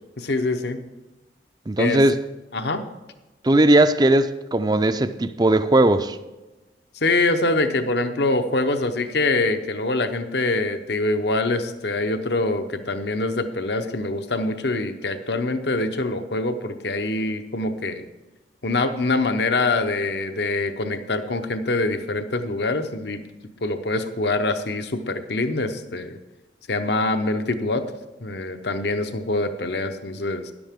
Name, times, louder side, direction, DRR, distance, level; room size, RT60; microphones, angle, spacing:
voice 1, 0.2-0.8 1.8-2.0 2.5-2.8 7.0-18.1 18.6-23.2 23.6-26.2 26.7-27.9 28.2-30.5, left 2 dB, 65° left, 0.9 m, -24 dB
voice 2, 1.7-2.2 3.4-6.2, right 1 dB, 20° right, 0.5 m, -18 dB
13.0 x 11.0 x 3.6 m
head